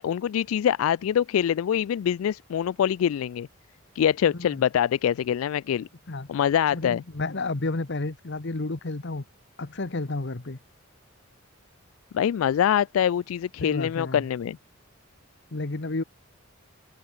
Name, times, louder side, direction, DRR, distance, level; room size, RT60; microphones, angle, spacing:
voice 1, 0.0-3.5 4.0-5.9 6.3-7.0 12.1-14.6, left 9 dB, 80° left, 0.3 m, -24 dB
voice 2, 6.7-9.2 9.6-10.6 13.6-14.3 15.5-16.0, left 2 dB, 55° left, 1.2 m, -31 dB
head